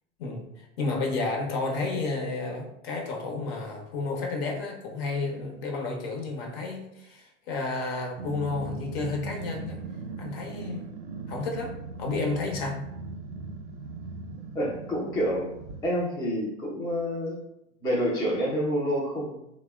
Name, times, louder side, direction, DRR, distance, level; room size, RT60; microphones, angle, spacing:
voice 1, 0.2-9.8 10.2-10.9 11.3-12.8, left 3 dB, 55° left, 1 dB, 0.7 m, -31 dB
Growling, 8.2-15.9, right 4 dB, 55° right, 0.5 m, -39 dB
voice 2, 14.5-15.5 15.8-17.4 17.8-19.4, equal, 10° left, -4 dB, 0.3 m, -28 dB
2.8 x 2.0 x 2.2 m, 0.82 s
hypercardioid pair, 105°, 37 cm